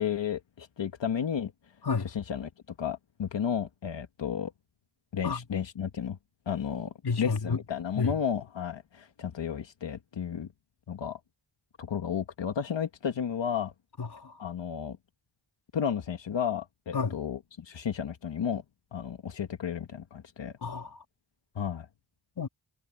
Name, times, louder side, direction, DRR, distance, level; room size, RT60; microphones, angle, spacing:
voice 1, 0.0-1.5 2.0-2.5 2.8-4.5 5.1-6.2 6.5-10.5 10.9-11.2 11.8-13.7 14.4-15.0 15.7-18.6 18.9-20.5 21.5-21.9, left 8 dB, 90° left, 1.6 m, -33 dB
voice 2, 7.0-7.6 8.0-8.2 14.0-14.4 16.9-17.2 20.6-21.0 22.4-22.5, left 5 dB, 60° left, 2.2 m, -30 dB
cardioid pair, 60°, 43 cm